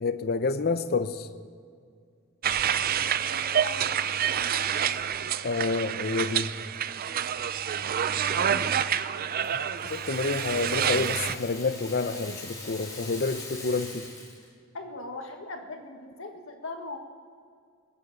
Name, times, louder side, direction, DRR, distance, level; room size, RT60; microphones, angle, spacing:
voice 1, 0.0-1.3 5.4-6.5 9.8-14.1, left 4 dB, 50° left, 11 dB, 0.8 m, -28 dB
sound 1, 2.4-11.4, right 8 dB, 45° right, 0.5 m, -28 dB
voice 2, 2.5-2.9 3.2-5.0 8.0-9.1 14.7-17.0, left 2 dB, 70° left, 4 dB, 1.7 m, -42 dB
Rattle (instrument), 9.4-14.5, left 2 dB, 15° left, 2.7 m, -43 dB
21.0 x 8.4 x 6.9 m, 2.2 s
head